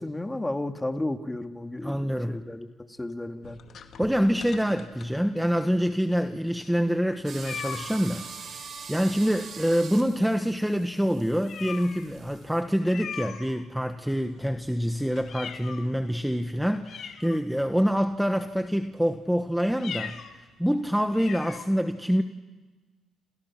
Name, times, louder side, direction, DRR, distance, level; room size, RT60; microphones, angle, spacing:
voice 1, 0.0-3.6, left 1 dB, 15° left, 6 dB, 2.0 m, -33 dB
voice 2, 1.8-2.4 4.0-8.3 8.9-22.2, equal, ahead, 7 dB, 1.2 m, -26 dB
sound 1, 3.4-5.5 6.1-6.2 6.5-6.6 7.4-8.0 9.3-9.8 10.1-10.3 10.8-10.9 11.4-12.1 12.8-13.9 14.3-16.0 16.4-16.5 16.8-17.8 18.4-18.7 19.7-20.4 20.7-20.8 21.1-21.7, left 7 dB, 65° left, 2.2 m, -40 dB
sound 2, 7.3-12.6, right 5 dB, 55° right, 4.6 m, -43 dB
29.5 x 28.0 x 6.0 m, 1.3 s
cardioid pair, 90°, 0 cm